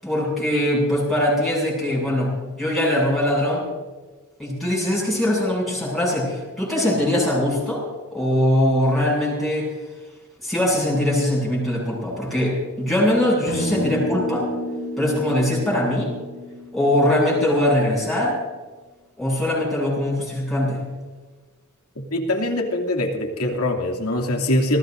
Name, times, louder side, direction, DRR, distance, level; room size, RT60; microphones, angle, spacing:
voice 1, 0.0-3.7 4.4-7.8 8.1-9.7 10.4-14.5 15.0-16.1 16.7-18.3 19.2-20.8, left 1 dB, ahead, -6 dB, 7.6 m, -21 dB
sound 1, 13.5-18.0, equal, 60° left, 5.4 m, -30 dB
voice 2, 22.0-24.8, left 1 dB, 85° left, 2 dB, 2.7 m, -23 dB
27.5 x 19.5 x 2.7 m, 1.3 s
head